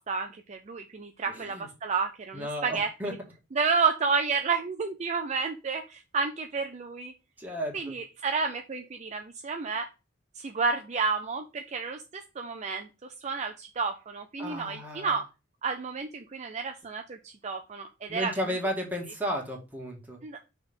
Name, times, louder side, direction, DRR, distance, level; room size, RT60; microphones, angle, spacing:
voice 1, 0.0-3.2 3.5-7.1 7.7-9.9 10.4-12.9 13.2-15.3 15.6-18.4 20.2-20.5, right 5 dB, 35° right, 5 dB, 0.5 m, -31 dB
voice 2, 1.3-1.7 2.3-3.1 7.4-7.9 14.4-15.2 18.1-20.2, equal, 10° right, -1 dB, 1.8 m, -34 dB
5.9 x 3.5 x 5.4 m, 0.29 s
head